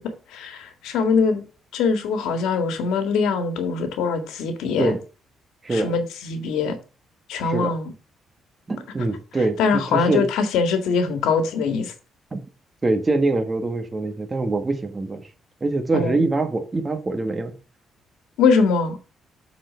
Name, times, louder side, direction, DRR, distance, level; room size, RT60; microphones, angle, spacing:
voice 1, 0.3-1.4 1.7-4.9 5.7-6.8 7.3-7.9 9.6-11.9 15.9-16.1 18.4-19.0, left 5 dB, 90° left, 1.7 m, -22 dB
voice 2, 5.6-5.9 7.4-7.8 8.7-10.3 12.3-12.4 12.8-15.3 15.6-17.5, right 2 dB, 25° right, 1.3 m, -24 dB
7.5 x 4.4 x 6.5 m
cardioid pair, 90°, 0 cm